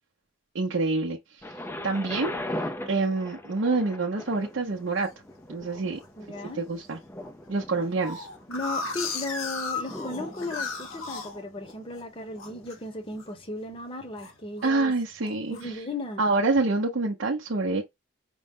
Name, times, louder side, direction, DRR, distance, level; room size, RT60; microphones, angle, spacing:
voice 1, 0.5-1.5 1.8-2.4 2.9-5.1 5.5-6.0 6.6-7.0 7.5-8.3 14.6-15.7 16.2-17.8, right 3 dB, 65° right, 0.6 m, -26 dB
Thunder, 1.4-13.3 14.0-14.1, left 1 dB, 10° left, 0.4 m, -40 dB
sound 1, 4.4-5.1 5.7-6.1 6.5-6.6 6.8-6.9 7.2-12.0 12.4-12.8 13.1-13.4 13.8-14.7 15.2-15.7, left 4 dB, 85° left, 0.9 m, -36 dB
voice 2, 6.2-6.6 8.5-14.9 15.5-16.2, left 2 dB, 25° left, 0.9 m, -36 dB
5.3 x 2.0 x 3.5 m
head